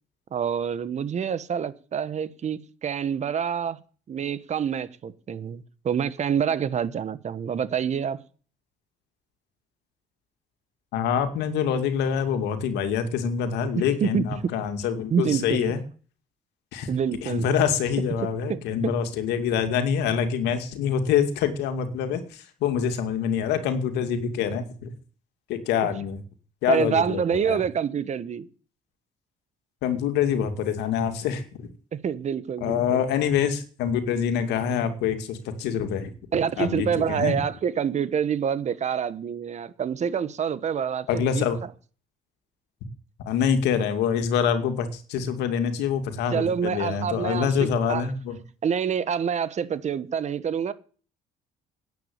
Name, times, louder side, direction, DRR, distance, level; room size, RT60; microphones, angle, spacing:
voice 1, 0.3-3.8 4.1-8.2 13.8-14.5 15.1-15.7 16.9-17.5 18.2-18.9 26.7-28.5 31.9-33.0 36.3-41.5 46.3-48.0 48.6-50.7, right 7 dB, 45° right, 1.3 m, -27 dB
voice 2, 10.9-15.8 16.7-16.9 17.2-24.9 25.5-26.2 26.6-27.6 29.8-31.4 32.6-36.1 36.6-37.4 41.1-41.6 43.3-48.4, left 7 dB, 85° left, 2.4 m, -25 dB
10.5 x 8.5 x 8.6 m
cardioid pair, 110°, 17 cm